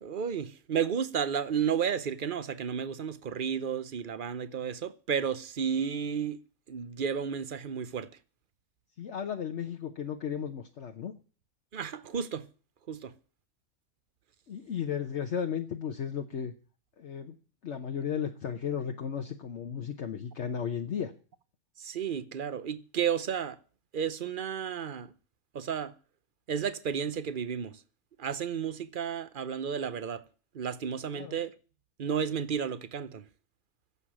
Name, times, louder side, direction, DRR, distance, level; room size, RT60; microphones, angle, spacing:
voice 1, 0.0-6.4 6.7-8.1 11.7-12.5 12.9-13.1 21.8-23.6 23.9-25.1 25.5-25.9 26.5-27.8 28.2-30.2 30.5-31.5 32.0-33.2, right 7 dB, 45° right, 0.8 m, -32 dB
voice 2, 9.0-11.1 14.5-16.5 17.0-17.3 17.6-21.1 31.1-31.4, left 8 dB, 55° left, 1.2 m, -34 dB
11.0 x 7.9 x 10.0 m
omnidirectional pair, 1.5 m